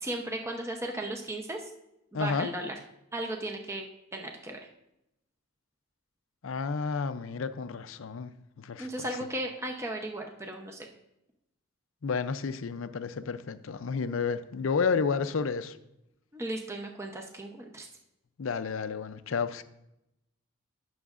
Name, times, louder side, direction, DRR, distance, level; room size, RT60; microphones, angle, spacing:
voice 1, 0.0-1.6 2.1-2.7 3.1-3.9 4.1-4.6 8.8-10.9 16.3-17.9, right 1 dB, 15° right, 0.7 m, -35 dB
voice 2, 2.1-2.5 6.4-9.1 12.0-15.8 18.4-19.6, left 5 dB, 70° left, 0.5 m, -31 dB
16.0 x 6.3 x 2.5 m
head